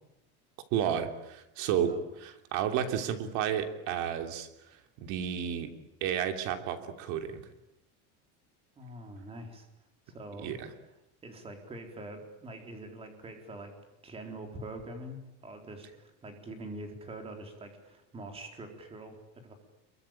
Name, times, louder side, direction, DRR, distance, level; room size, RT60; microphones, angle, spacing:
voice 1, 0.7-5.7 6.0-7.4 10.4-10.7, right 9 dB, 50° right, 6 dB, 3.1 m, -32 dB
voice 2, 8.8-9.7 10.1-10.6 11.2-13.7 14.0-19.5, right 1 dB, 15° right, 4 dB, 4.2 m, -44 dB
26.5 x 23.5 x 9.1 m, 0.90 s
cardioid pair, 170°, 37 cm